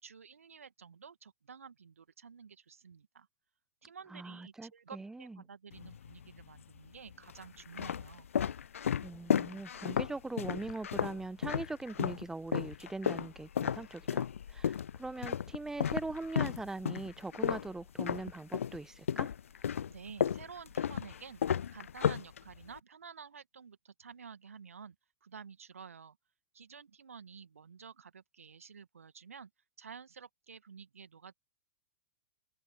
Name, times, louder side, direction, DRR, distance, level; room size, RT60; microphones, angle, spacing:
voice 1, 0.0-3.3 3.8-8.3 19.9-21.4 21.7-25.0 25.2-26.2 26.5-29.5 29.8-31.3, right 6 dB, 70° right, 1.9 m, -51 dB
voice 2, 4.1-5.4 9.0-19.3, right 2 dB, 5° right, 1.3 m, -41 dB
sound 1, 5.7-6.4 7.1-12.2 12.5-18.8 19.1-22.8, left 8 dB, 65° left, 0.4 m, -33 dB
figure-of-eight pair, 105°, 8 cm